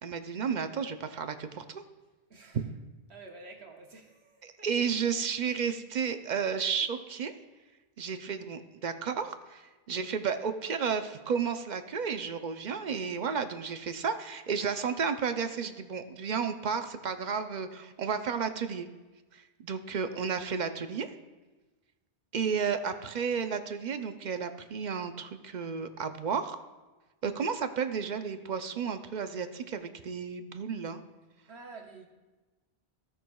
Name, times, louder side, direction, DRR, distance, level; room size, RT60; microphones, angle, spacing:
voice 1, 0.0-1.8 2.5-2.6 4.4-7.3 8.0-18.9 19.3-21.1 22.3-26.6 27.2-31.0, right 6 dB, 50° right, 9 dB, 0.6 m, -32 dB
voice 2, 2.3-2.7 3.1-4.7 31.5-32.1, right 3 dB, 80° right, 2 dB, 1.4 m, -49 dB
16.5 x 6.2 x 2.3 m, 1.2 s
omnidirectional pair, 1.1 m